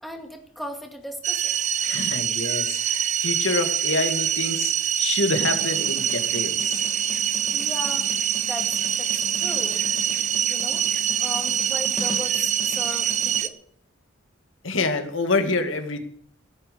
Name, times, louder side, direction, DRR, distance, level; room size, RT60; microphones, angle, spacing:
voice 1, 0.0-1.9 7.5-8.1 8.4-9.8 10.5-10.8 11.2-13.6, equal, ahead, 2 dB, 2.2 m, -37 dB
sound 1, 1.2-13.5, right 10 dB, 40° right, 0.7 m, -25 dB
voice 2, 1.8-6.9 14.6-16.0, left 3 dB, 75° left, 6 dB, 2.0 m, -27 dB
sound 2, 5.4-13.4, left 1 dB, 20° left, 2.1 m, -39 dB
16.5 x 8.8 x 6.9 m, 0.64 s
head